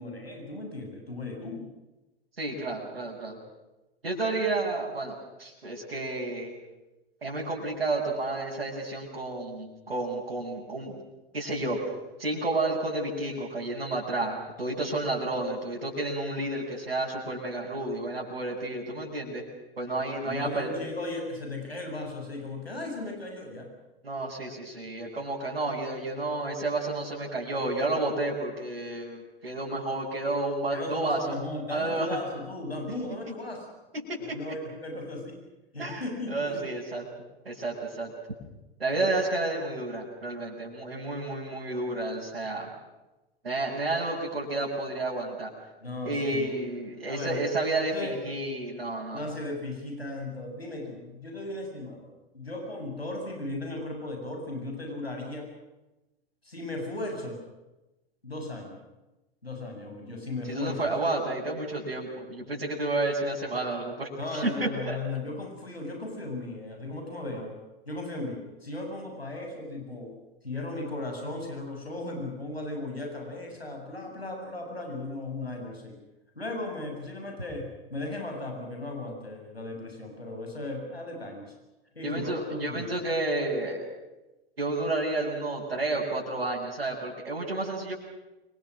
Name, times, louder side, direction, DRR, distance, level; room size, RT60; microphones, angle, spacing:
voice 1, 0.0-1.6 20.3-23.7 30.7-33.7 34.2-35.4 35.7-36.6 45.8-46.5 47.1-47.4 47.9-48.2 49.1-55.5 56.4-57.4 58.2-58.8 59.4-60.9 64.2-67.6 67.9-70.1 70.4-76.0 76.4-81.5 81.9-82.9, left 2 dB, 85° left, 2 dB, 7.8 m, -36 dB
voice 2, 2.4-3.4 4.0-6.5 7.2-11.0 11.3-11.9 12.2-19.4 19.8-20.7 24.0-31.2 31.7-32.1 33.9-34.4 35.8-37.0 37.4-38.1 38.8-42.7 43.4-45.5 46.0-49.2 60.5-65.0 82.0-83.9 84.6-87.9, right 2 dB, 80° right, -5 dB, 7.7 m, -31 dB
30.0 x 25.5 x 6.4 m, 1.0 s
figure-of-eight pair, 90°, 30 cm